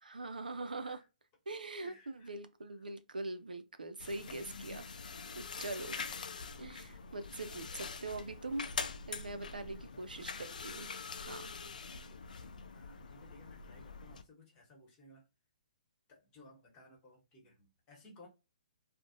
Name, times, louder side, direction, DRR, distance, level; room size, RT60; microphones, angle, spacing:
voice 1, 0.0-1.0 1.5-4.9 5.3-6.0 6.6-8.7 9.1-10.9 11.2-11.5, right 2 dB, 85° right, 0.4 m, -42 dB
voice 2, 1.8-2.3 9.5-10.0 11.8-15.2 16.1-18.3, left 2 dB, 25° left, 1.1 m, -60 dB
sound 1, 4.0-14.2, left 5 dB, 70° left, 0.4 m, -44 dB
2.5 x 2.1 x 2.5 m
figure-of-eight pair, 130°, 5 cm